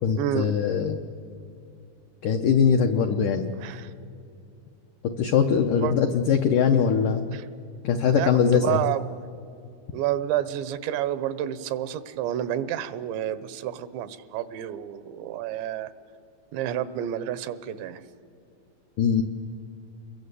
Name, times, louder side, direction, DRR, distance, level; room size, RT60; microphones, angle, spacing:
voice 1, 0.0-1.0 2.2-3.5 5.2-7.2 7.8-8.8 19.0-19.2, left 7 dB, 85° left, 5 dB, 1.8 m, -21 dB
voice 2, 3.6-3.9 5.8-6.0 7.3-7.5 8.1-9.1 9.9-15.9 16.5-18.0, right 11 dB, 85° right, 15 dB, 3.2 m, -29 dB
28.5 x 22.0 x 8.2 m, 2.5 s
omnidirectional pair, 5.0 m